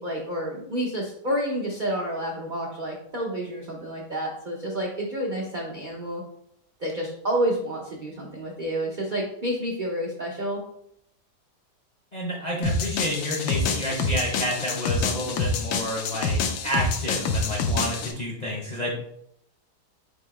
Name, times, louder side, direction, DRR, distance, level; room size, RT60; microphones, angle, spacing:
voice 1, 0.0-6.2 6.8-10.6, right 1 dB, 70° right, -2 dB, 0.4 m, -29 dB
voice 2, 12.1-18.9, equal, 40° left, -3 dB, 0.6 m, -30 dB
sound 1, 12.6-18.1, left 4 dB, 85° left, 1.2 m, -27 dB
4.0 x 2.8 x 4.7 m, 0.74 s
omnidirectional pair, 1.8 m